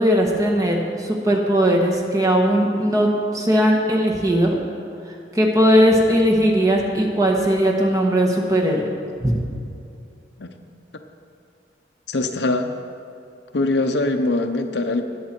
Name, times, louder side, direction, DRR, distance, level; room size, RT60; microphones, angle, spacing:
voice 1, 0.0-4.6 5.3-8.9 9.2-9.4, equal, 20° right, 0 dB, 1.3 m, -18 dB
voice 2, 12.1-12.7 13.5-15.0, left 2 dB, 70° left, 6 dB, 0.8 m, -22 dB
19.5 x 7.4 x 4.5 m, 2.5 s
head